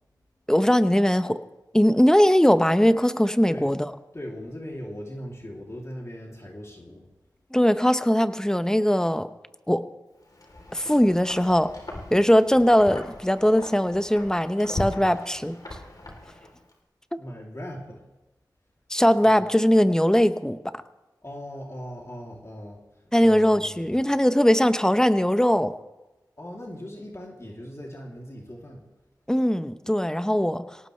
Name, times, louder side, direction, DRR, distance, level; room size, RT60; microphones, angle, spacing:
voice 1, 0.5-1.4 1.7-3.8 7.5-9.3 9.7-9.8 10.7-11.7 12.1-15.6 18.9-20.6 23.1-25.7 29.3-30.7, equal, 10° left, 10 dB, 0.9 m, -20 dB
voice 2, 4.1-7.1 17.2-18.0 19.2-19.3 21.2-24.0 26.4-28.8, equal, 40° left, -2 dB, 3.0 m, -39 dB
Wind, 10.2-16.7, left 1 dB, 55° left, 3.5 m, -39 dB
23.0 x 18.0 x 3.3 m, 1.0 s
wide cardioid pair, 45°, 8 cm